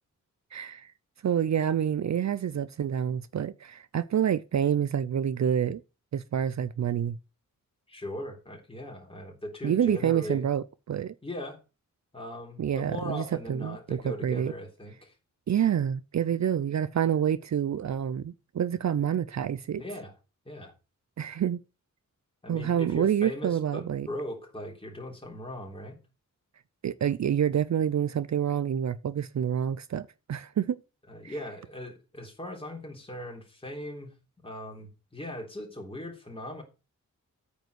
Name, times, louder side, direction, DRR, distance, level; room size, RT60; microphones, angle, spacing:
voice 1, 0.5-0.9 1.2-5.8 6.1-7.2 9.6-11.1 12.6-14.5 15.5-19.8 21.2-21.6 22.5-24.1 26.8-30.8 31.2-31.3, right 9 dB, 55° right, 0.5 m, -28 dB
voice 2, 7.9-10.5 11.2-11.6 12.1-15.1 19.8-20.2 20.5-20.7 22.4-26.0 31.1-34.1 34.4-36.6, left 1 dB, 15° left, 3.7 m, -39 dB
9.1 x 5.3 x 8.0 m
wide cardioid pair, 150°, 33 cm